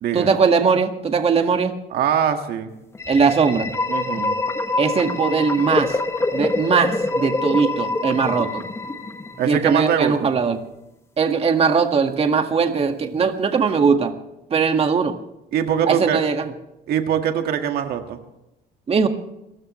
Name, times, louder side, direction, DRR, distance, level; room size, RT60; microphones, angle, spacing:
voice 1, 0.1-1.7 3.1-3.7 4.8-6.0 6.3-8.6 9.4-10.6 11.2-14.1 14.5-15.1 15.9-16.5 18.9-19.1, right 5 dB, 35° right, 5 dB, 1.8 m, -19 dB
voice 2, 1.9-2.7 3.9-4.4 9.4-10.3 15.5-16.2 16.9-18.2, right 9 dB, 70° right, 5 dB, 1.9 m, -22 dB
sound 1, 3.0-9.7, left 2 dB, 15° left, 1.8 m, -25 dB
29.0 x 15.5 x 3.2 m, 0.89 s
cardioid pair, 110°, 17 cm